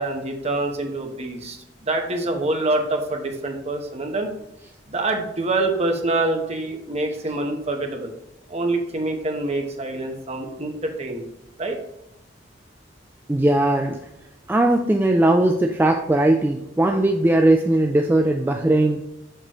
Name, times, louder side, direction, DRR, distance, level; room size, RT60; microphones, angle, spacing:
voice 1, 0.0-1.6 1.8-4.3 4.9-8.1 8.5-11.3 11.6-11.8, right 2 dB, 35° right, 3 dB, 1.0 m, -25 dB
voice 2, 13.3-14.0 14.5-19.0, right 1 dB, 10° right, 2 dB, 0.4 m, -19 dB
6.7 x 6.1 x 3.0 m, 0.86 s
head